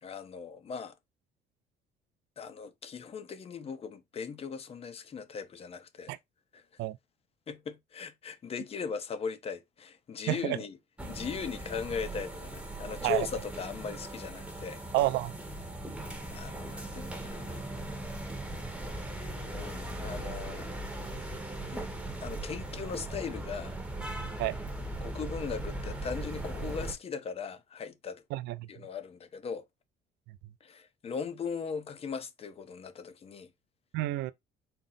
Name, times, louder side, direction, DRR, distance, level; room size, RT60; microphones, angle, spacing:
voice 1, 0.0-0.9 2.4-6.2 6.5-6.6 7.5-10.8 11.1-14.8 16.3-17.6 19.5-20.7 21.7-21.9 22.2-23.8 25.0-28.2 28.7-29.6 30.6-33.5, left 6 dB, 35° left, 0.7 m, -39 dB
voice 2, 10.3-10.6 13.0-13.3 14.9-15.3 24.4-24.6 28.3-28.7 33.9-34.3, right 16 dB, 85° right, 0.4 m, -29 dB
sound 1, 11.0-26.9, right 1 dB, 5° right, 0.9 m, -39 dB
4.2 x 2.0 x 3.9 m
cardioid pair, 110°, 17 cm